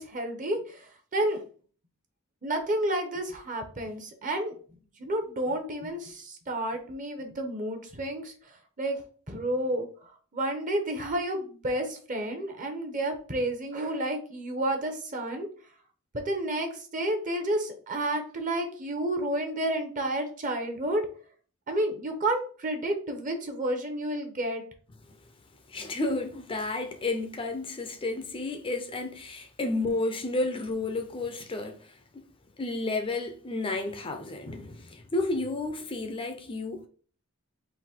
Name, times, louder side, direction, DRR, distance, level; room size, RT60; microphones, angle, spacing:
voice 1, 0.0-1.4 2.4-4.5 5.0-15.5 16.1-21.0 21.7-24.6, right 1 dB, 35° right, 0.8 m, -31 dB
voice 2, 25.7-32.2 32.6-36.9, left 2 dB, 25° left, 0.5 m, -32 dB
3.9 x 2.6 x 4.3 m
head